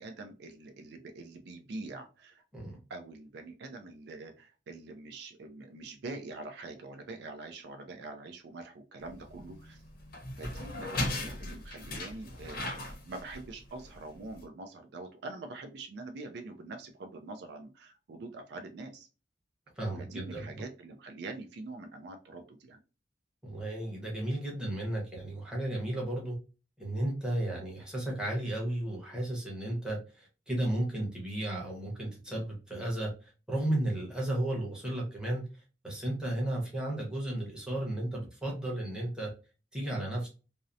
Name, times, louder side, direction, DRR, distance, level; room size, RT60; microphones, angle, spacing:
voice 1, 0.0-2.4 2.9-9.8 10.4-19.1 20.0-22.8, right 3 dB, 65° right, 5 dB, 0.4 m, -44 dB
sound 1, 9.0-14.4, left 1 dB, 55° left, 0.6 m, -38 dB
voice 2, 19.8-20.6 23.4-26.3 26.8-35.4 35.8-39.3 39.7-40.3, right 1 dB, 5° right, -3 dB, 0.8 m, -34 dB
2.7 x 2.0 x 2.4 m, 0.33 s
head